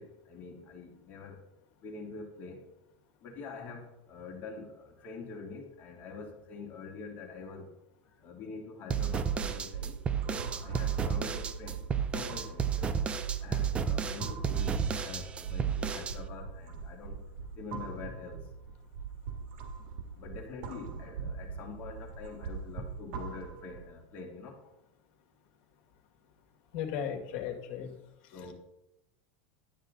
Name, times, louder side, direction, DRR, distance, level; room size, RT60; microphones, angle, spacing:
voice 1, 0.0-1.4 1.8-2.6 3.2-7.7 8.2-10.0 10.2-11.8 12.1-13.0 13.4-17.2 17.5-18.5 20.2-24.7 28.3-28.5, left 4 dB, 35° left, 0 dB, 2.7 m, -45 dB
sound 1, 8.9-16.2, right 7 dB, 20° right, 0.6 m, -32 dB
sound 2, 9.2-24.0, right 6 dB, 60° right, 1.7 m, -41 dB
voice 2, 26.7-27.9, left 8 dB, 60° left, 4 dB, 2.1 m, -35 dB
12.0 x 8.9 x 3.9 m, 0.86 s
supercardioid pair, 150°, 6 cm